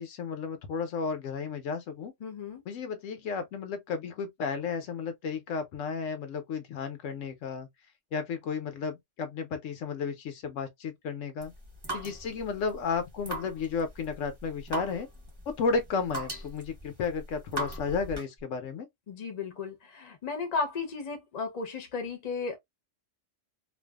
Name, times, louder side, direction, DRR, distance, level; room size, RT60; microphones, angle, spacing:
voice 1, 0.0-2.1 2.7-7.7 8.1-11.5 11.9-15.1 15.5-18.9, left 5 dB, 80° left, 1.0 m, -33 dB
voice 2, 2.2-2.6 19.1-22.6, left 4 dB, 40° left, 0.7 m, -34 dB
sound 1, 11.4-18.4, right 2 dB, 20° right, 0.9 m, -40 dB
2.5 x 2.3 x 2.2 m
omnidirectional pair, 1.3 m